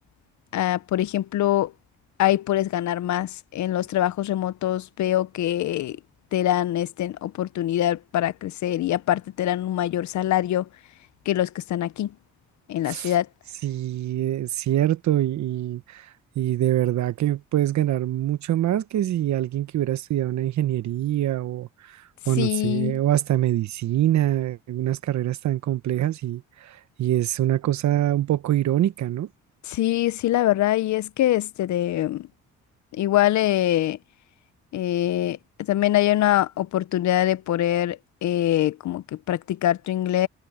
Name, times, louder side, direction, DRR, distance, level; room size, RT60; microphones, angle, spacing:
voice 1, 0.5-1.7 2.2-6.0 6.3-10.7 11.3-12.1 12.7-13.3 22.4-23.0 29.6-32.3 32.9-34.0 34.7-40.3, left 13 dB, 70° left, 0.8 m, -24 dB
voice 2, 13.6-16.1 16.4-29.3, right 13 dB, 70° right, 1.0 m, -24 dB
cardioid pair, 90°, 30 cm